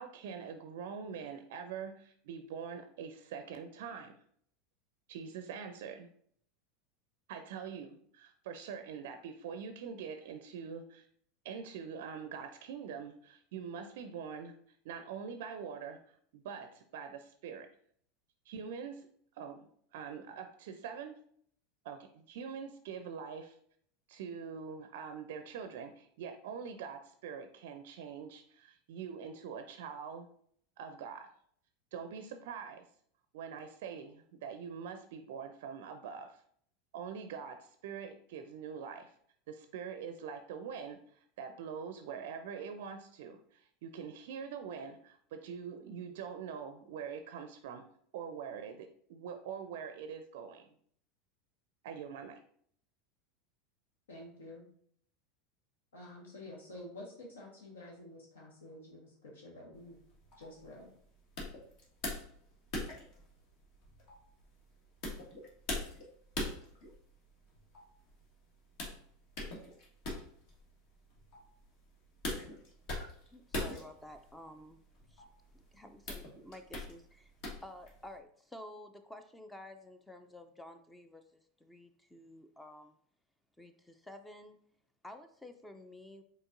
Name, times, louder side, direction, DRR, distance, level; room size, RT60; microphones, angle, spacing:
voice 1, 0.0-4.2 5.1-6.1 7.3-11.1 11.4-14.5 14.8-17.7 18.5-19.1 19.3-21.2 21.8-23.6 24.1-30.3 30.8-31.3 31.9-32.9 33.3-36.4 36.9-39.1 39.5-47.8 48.1-50.7 51.8-52.4, right 6 dB, 65° right, 7 dB, 0.4 m, -44 dB
voice 2, 54.1-54.6 55.9-60.0 60.4-60.9, left 1 dB, 80° left, -2 dB, 1.2 m, -49 dB
sound 1, 59.7-78.2, left 1 dB, 55° left, 1.4 m, -43 dB
voice 3, 73.3-74.8 75.1-75.2 75.5-77.3 77.6-83.0 83.6-84.6 85.0-86.2, left 1 dB, 10° left, 8 dB, 0.4 m, -51 dB
5.1 x 3.9 x 2.5 m, 0.62 s
hypercardioid pair, 85°, 0 cm